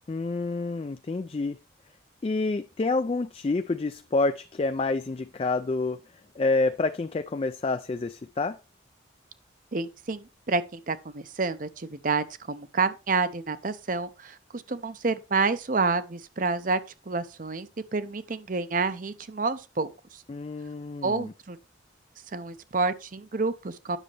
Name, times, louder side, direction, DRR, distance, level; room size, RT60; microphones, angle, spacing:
voice 1, 0.1-1.6 2.2-6.0 6.4-8.6 20.3-21.3, left 3 dB, 30° left, 0.3 m, -28 dB
voice 2, 9.7-16.8 17.1-20.2 21.0-21.6 22.3-24.0, right 4 dB, 45° right, 0.7 m, -29 dB
9.9 x 6.4 x 3.3 m
head